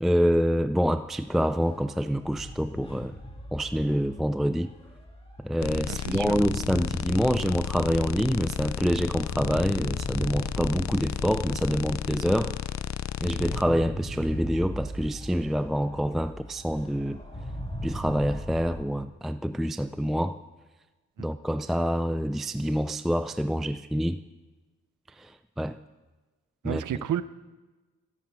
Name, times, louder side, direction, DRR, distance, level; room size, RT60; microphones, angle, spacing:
voice 1, 0.0-3.1 3.5-4.7 5.4-12.6 13.2-17.2 17.8-20.4 21.2-24.2 25.2-25.8 26.6-27.1, equal, ahead, 0.4 m, -26 dB
sound 1, 0.9-18.8, equal, 20° left, 2.8 m, -39 dB
sound 2, 5.6-13.6, left 10 dB, 65° left, 0.6 m, -33 dB
voice 2, 5.9-6.4 21.2-21.3 26.6-27.2, right 11 dB, 80° right, 0.8 m, -31 dB
15.5 x 11.0 x 7.9 m
cardioid pair, 85°, 30 cm